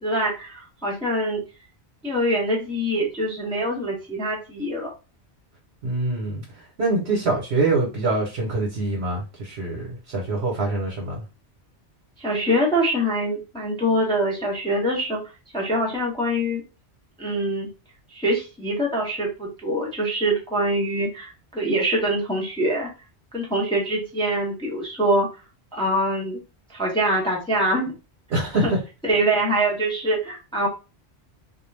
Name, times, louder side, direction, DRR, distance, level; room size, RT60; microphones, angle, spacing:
voice 1, 0.0-1.4 2.0-4.9 12.2-15.2 15.5-16.6 17.2-17.7 18.1-22.9 23.3-25.3 25.7-26.4 26.7-27.9 28.6-28.7 29.0-30.7, right 1 dB, 5° left, 0.5 m, -24 dB
voice 2, 5.8-6.4 6.8-11.2 28.3-28.8, right 2 dB, 70° right, 1.0 m, -24 dB
2.3 x 2.2 x 3.1 m
omnidirectional pair, 1.1 m